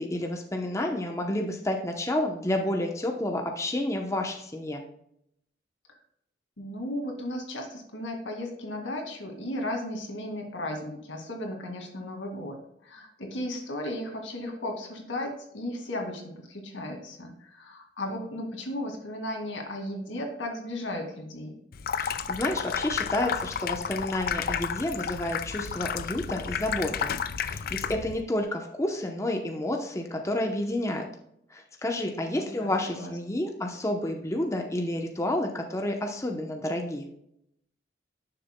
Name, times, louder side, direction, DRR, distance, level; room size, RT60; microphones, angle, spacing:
voice 1, 0.0-4.8 22.0-27.1 27.4-31.1 31.5-37.1, left 1 dB, 15° left, 3 dB, 0.8 m, -30 dB
voice 2, 6.6-21.5 32.4-33.4, left 1 dB, 85° left, 2 dB, 2.0 m, -35 dB
Water tap faucet / Sink (filling or washing), 21.7-28.2, left 7 dB, 50° left, 0.4 m, -32 dB
11.0 x 6.7 x 2.2 m, 0.75 s
head